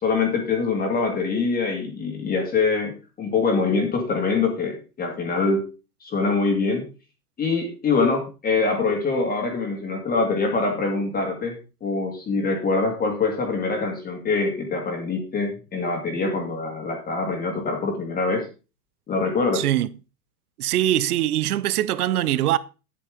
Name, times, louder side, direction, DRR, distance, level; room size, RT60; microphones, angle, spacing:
voice 1, 0.0-5.7 6.0-6.8 7.4-18.5 19.1-19.6, left 4 dB, 20° left, 2.1 m, -24 dB
voice 2, 19.5-19.9 20.6-22.6, right 13 dB, 65° right, 0.8 m, -22 dB
9.8 x 8.6 x 3.6 m
hypercardioid pair, 120°, 48 cm